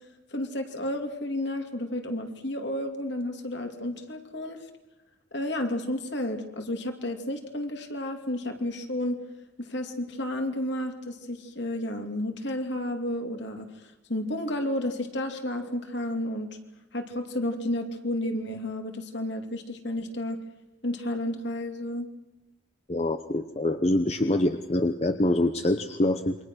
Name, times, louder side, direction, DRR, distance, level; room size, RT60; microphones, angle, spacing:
voice 1, 0.3-4.6 5.3-9.2 9.6-16.6 16.9-20.4 20.8-22.1, left 1 dB, 60° left, 5 dB, 2.5 m, -31 dB
voice 2, 22.9-26.4, left 1 dB, 30° left, 8 dB, 0.8 m, -25 dB
28.0 x 24.0 x 6.3 m, 1.0 s
head